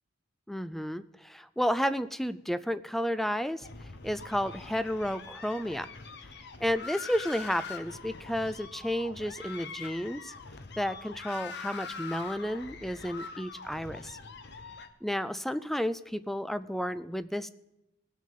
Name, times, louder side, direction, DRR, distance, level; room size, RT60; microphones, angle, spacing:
voice 1, 0.5-3.7 4.0-5.9 6.6-10.3 10.8-14.2 15.0-17.5, equal, ahead, 14 dB, 0.4 m, -32 dB
sound 1, 3.6-14.9, left 5 dB, 65° left, 0.9 m, -43 dB
18.5 x 6.4 x 5.4 m, 0.88 s
head